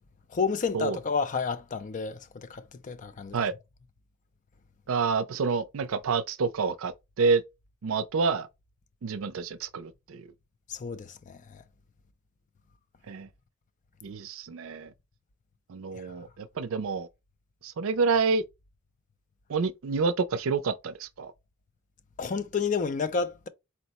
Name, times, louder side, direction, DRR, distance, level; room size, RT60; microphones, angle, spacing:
voice 1, 0.3-3.4 10.7-11.6 22.2-23.5, left 5 dB, 40° left, 0.4 m, -30 dB
voice 2, 4.9-7.4 7.8-8.5 9.0-10.2 13.1-13.3 14.0-14.9 15.7-17.1 17.6-18.4 19.5-21.3, right 5 dB, 75° right, 0.5 m, -28 dB
4.2 x 2.0 x 4.1 m
head